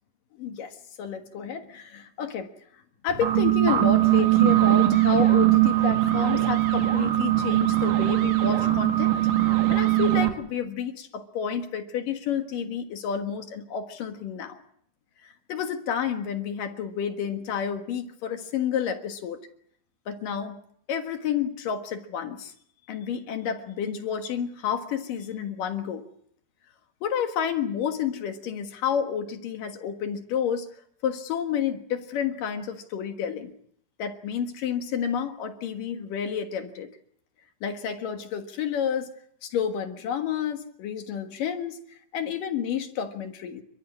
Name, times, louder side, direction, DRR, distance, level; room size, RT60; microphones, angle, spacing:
voice 1, 0.4-2.5 3.0-9.1 9.7-14.6 15.2-19.4 20.1-20.6 20.9-22.5 22.9-26.0 27.0-30.7 31.0-33.5 34.0-36.9 37.6-39.1 39.4-41.8 42.1-43.6, left 8 dB, 60° left, 6 dB, 2.9 m, -30 dB
sound 1, 3.1-10.3, right 15 dB, 60° right, 3.7 m, -21 dB
29.5 x 14.0 x 9.7 m, 0.69 s
omnidirectional pair, 4.6 m